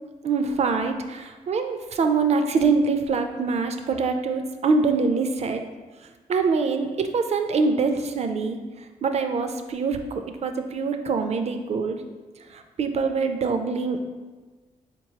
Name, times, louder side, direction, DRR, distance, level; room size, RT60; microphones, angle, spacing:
voice 1, 0.2-5.6 6.3-8.6 9.0-12.0 12.5-14.0, right 4 dB, 50° right, 6 dB, 0.4 m, -24 dB
4.3 x 3.0 x 2.8 m, 1.3 s
cardioid pair, 75°, 14 cm